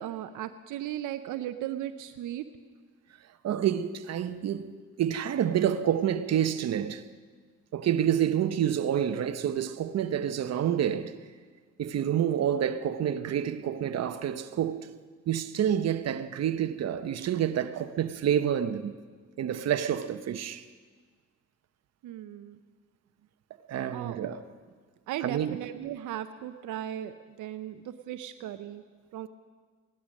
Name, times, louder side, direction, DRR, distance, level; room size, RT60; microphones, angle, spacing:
voice 1, 0.0-2.4 22.0-22.6 23.9-24.4 25.1-28.8 29.1-29.3, right 12 dB, 85° right, 0.7 m, -37 dB
voice 2, 3.4-4.7 5.0-7.0 7.7-11.1 11.8-14.9 15.3-18.9 19.4-20.6 23.7-24.4 25.2-25.6, right 9 dB, 60° right, 0.9 m, -28 dB
17.0 x 12.0 x 6.4 m
cardioid pair, 90°, 30 cm